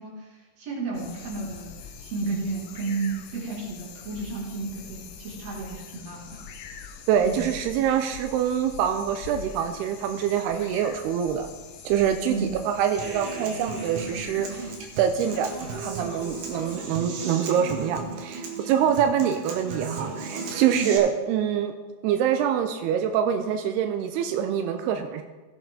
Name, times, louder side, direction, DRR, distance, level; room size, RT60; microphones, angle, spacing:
voice 1, 0.0-6.4 7.2-7.5 12.3-12.6 20.7-20.9, right 3 dB, 45° right, -3 dB, 3.4 m, -32 dB
sound 1, 0.9-16.8, left 6 dB, 85° left, 1.7 m, -44 dB
voice 2, 7.1-11.5 11.9-21.7 22.0-25.2, right 9 dB, 85° right, 7 dB, 2.7 m, -25 dB
Human voice / Acoustic guitar, 13.0-21.0, right 4 dB, 65° right, 2.5 m, -35 dB
16.0 x 8.3 x 3.8 m, 1.2 s
omnidirectional pair, 4.6 m